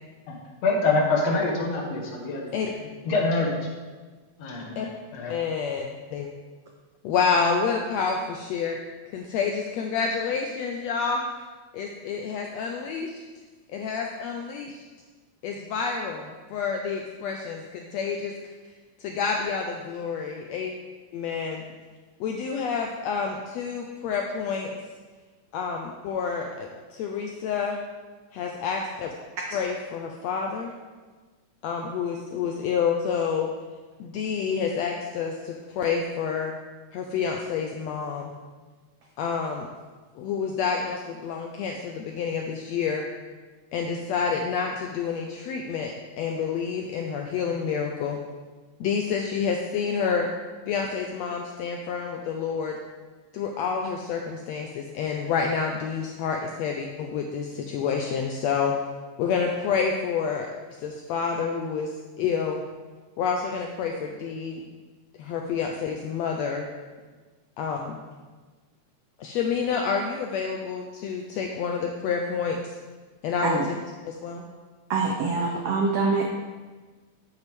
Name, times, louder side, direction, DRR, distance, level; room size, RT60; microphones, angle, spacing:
voice 1, 0.6-2.5 3.1-3.6 4.4-5.3, left 3 dB, 65° left, -1 dB, 2.1 m, -25 dB
voice 2, 5.3-6.3 7.0-8.8 9.1-11.2 11.7-13.2 13.7-14.8 15.4-18.3 19.0-20.7 21.1-21.6 22.2-24.7 25.5-27.8 28.3-29.1 29.5-30.7 31.6-33.5 34.0-36.5 36.9-38.3 39.2-39.7 40.2-43.0 43.7-48.2 48.8-50.3 50.6-52.8 53.3-58.7 59.2-60.5 60.8-61.9 62.2-62.6 63.2-64.6 65.2-66.7 67.6-68.0 69.2-72.7 73.2-73.7 74.0-74.5, left 6 dB, 85° left, 2 dB, 1.5 m, -28 dB
voice 3, 74.9-76.2, right 4 dB, 85° right, 1 dB, 1.3 m, -24 dB
8.1 x 7.8 x 3.5 m, 1.4 s
omnidirectional pair, 3.6 m